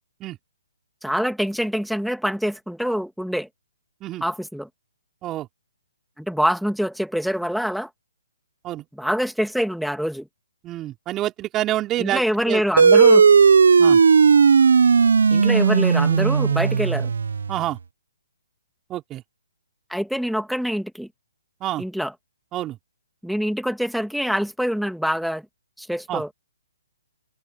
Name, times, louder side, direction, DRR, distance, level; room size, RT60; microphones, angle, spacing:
voice 1, 1.0-3.5 4.2-4.7 6.2-7.9 8.9-10.3 12.0-13.3 15.3-17.1 19.9-21.1 21.8-22.1 23.2-25.4 25.8-26.3, equal, ahead, 2.3 m, -25 dB
voice 2, 10.6-12.6 13.8-14.0 17.5-17.8 18.9-19.2 21.6-21.8 22.5-22.8 26.1-26.2, right 14 dB, 20° right, 3.0 m, -27 dB
sound 1, 12.8-17.6, right 5 dB, 70° right, 0.9 m, -15 dB
figure-of-eight pair, 135°, 0 cm